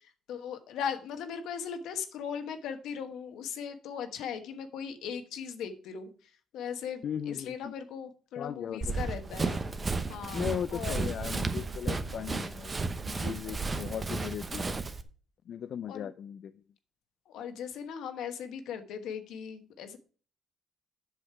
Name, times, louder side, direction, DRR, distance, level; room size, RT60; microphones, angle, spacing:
voice 1, 0.3-6.1 6.5-9.6 10.1-11.1 15.9-16.1 17.3-20.0, left 7 dB, 85° left, 8 dB, 1.2 m, -38 dB
voice 2, 7.0-7.7 8.4-9.0 10.3-14.8 15.5-16.5, left 8 dB, 65° left, 12 dB, 0.3 m, -37 dB
Run, 8.8-15.0, right 3 dB, 30° right, 0.9 m, -33 dB
7.8 x 6.4 x 4.7 m, 0.40 s
cardioid pair, 90°, 0 cm